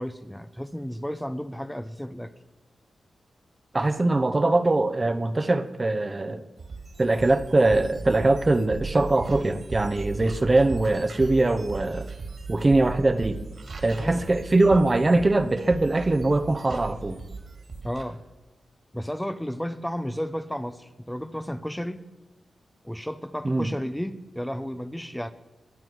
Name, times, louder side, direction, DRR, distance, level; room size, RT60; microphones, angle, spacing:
voice 1, 0.0-2.3 14.0-14.2 17.8-18.2 18.9-22.1 22.8-25.3, equal, 5° left, 10 dB, 0.9 m, -33 dB
voice 2, 3.7-6.4 7.0-12.1 12.5-13.4 13.8-17.2 23.4-23.7, right 2 dB, 35° right, 11 dB, 1.0 m, -22 dB
sound 1, 6.6-18.0, right 4 dB, 65° right, 2.8 m, -37 dB
21.0 x 7.5 x 6.3 m, 1.1 s
supercardioid pair, 40°, 0 cm